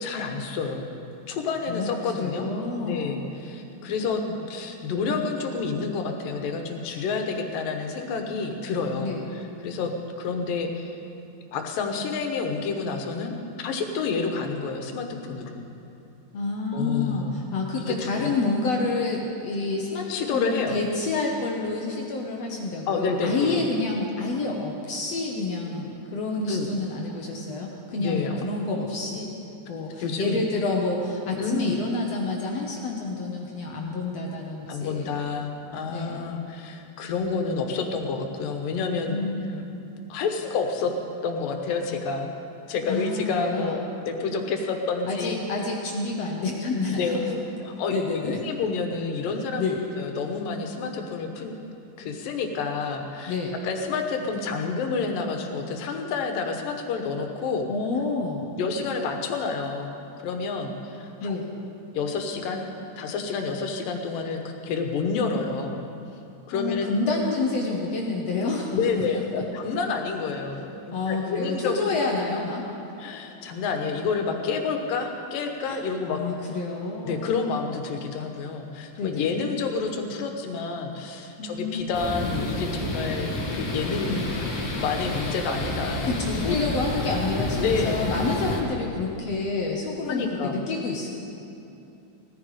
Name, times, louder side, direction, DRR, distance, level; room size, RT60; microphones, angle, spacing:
voice 1, 0.0-0.9 1.3-2.5 2.8-4.2 4.5-9.9 10.2-10.9 11.5-15.6 16.7-17.5 17.8-18.3 20.1-20.8 22.9-23.7 26.5-26.7 28.0-28.4 30.0-30.4 31.3-31.8 34.7-39.2 40.1-40.9 41.2-42.3 42.7-45.4 46.9-47.4 47.8-49.6 50.0-51.5 52.0-53.3 53.6-57.7 58.6-60.0 60.2-61.4 61.9-62.7 63.0-65.8 66.5-66.9 68.7-71.9 72.2-72.3 73.0-76.2 77.1-84.4 84.8-86.2 86.4-86.6 87.5-88.1 90.1-90.6, left 4 dB, 85° left, 4 dB, 2.9 m, -29 dB
voice 2, 1.7-3.2 4.3-4.4 9.0-9.3 16.3-29.3 29.7-35.2 35.9-36.3 39.1-39.7 42.9-43.8 45.1-47.1 47.9-48.4 49.6-49.8 53.3-53.5 57.7-58.5 61.2-61.5 66.5-69.4 70.9-72.7 75.7-75.8 76.1-77.3 79.0-79.4 81.4-81.8 82.2-82.3 86.0-91.2, left 3 dB, 60° left, 0 dB, 1.8 m, -29 dB
sound 1, 81.9-88.6, left 1 dB, 30° left, 2.0 m, -29 dB
18.5 x 14.0 x 5.0 m, 2.7 s
omnidirectional pair, 3.9 m